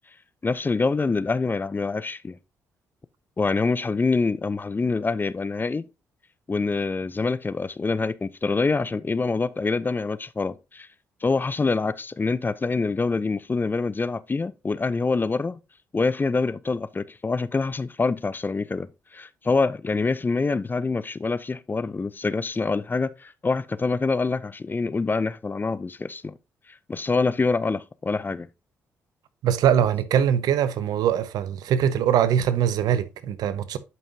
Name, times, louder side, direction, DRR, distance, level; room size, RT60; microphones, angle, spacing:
voice 1, 0.4-2.4 3.4-5.8 6.5-10.9 11.2-15.6 15.9-18.9 19.1-26.3 26.9-28.5, left 4 dB, 30° left, 0.6 m, -25 dB
voice 2, 29.4-33.8, right 9 dB, 70° right, 0.7 m, -22 dB
11.0 x 5.5 x 2.7 m
hypercardioid pair, 45°, 7 cm